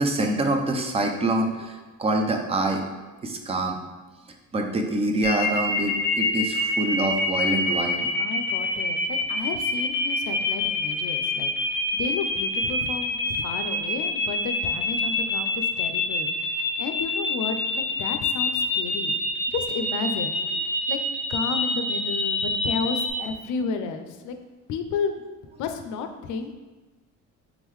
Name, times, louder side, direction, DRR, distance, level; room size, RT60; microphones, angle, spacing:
voice 1, 0.0-2.8 3.2-3.8 4.5-8.1, right 2 dB, 20° right, 3 dB, 0.3 m, -25 dB
sound 1, 5.2-23.1, left 3 dB, 35° left, 0.8 m, -26 dB
voice 2, 8.2-19.1 19.5-21.0 21.3-24.4 24.7-25.2 25.4-26.5, left 5 dB, 70° left, 7 dB, 0.5 m, -32 dB
3.7 x 3.6 x 3.1 m, 1.2 s
cardioid pair, 150°, 31 cm